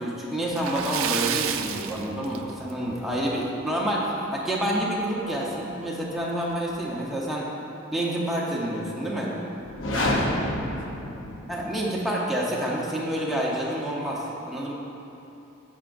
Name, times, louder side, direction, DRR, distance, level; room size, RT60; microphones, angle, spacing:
voice 1, 0.0-7.5 7.9-9.3 11.5-14.7, right 1 dB, ahead, -5 dB, 0.9 m, -28 dB
Splash splatter, 0.5-2.9 3.2-3.4 3.8-3.9 5.4-5.5 5.8-5.9 6.5-6.8, right 9 dB, 85° right, 0.4 m, -30 dB
sound 1, 9.7-11.8, left 1 dB, 70° left, 0.9 m, -27 dB
voice 2, 9.8-11.1, equal, 40° left, 0 dB, 0.6 m, -49 dB
10.5 x 7.4 x 2.6 m, 2.9 s
head